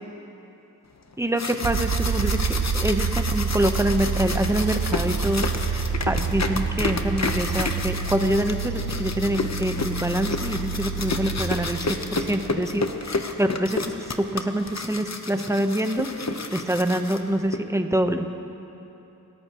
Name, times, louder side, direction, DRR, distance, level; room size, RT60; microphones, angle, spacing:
sound 1, 1.1-17.6, left 3 dB, 45° left, 1.0 m, -31 dB
voice 1, 1.2-16.1 16.5-18.3, right 1 dB, 10° right, 6 dB, 0.9 m, -26 dB
sound 2, 1.6-13.3, right 5 dB, 55° right, 0.6 m, -28 dB
27.5 x 14.0 x 3.0 m, 3.0 s
wide cardioid pair, 60°, 38 cm